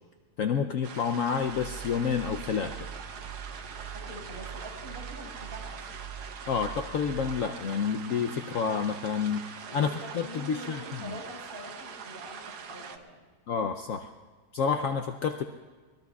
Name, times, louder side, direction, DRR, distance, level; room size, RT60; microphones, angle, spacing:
voice 1, 0.4-2.7 6.5-9.9 10.1-11.2 13.5-14.1 14.5-15.4, left 6 dB, 65° left, 5 dB, 0.9 m, -29 dB
sound 1, 0.8-13.0, right 6 dB, 75° right, 1.4 m, -43 dB
sound 2, 1.4-7.4, right 7 dB, 55° right, 0.9 m, -43 dB
voice 2, 3.9-5.8 9.5-13.2, equal, 35° right, -4 dB, 5.4 m, -44 dB
23.5 x 20.5 x 2.4 m, 1.4 s
omnidirectional pair, 1.7 m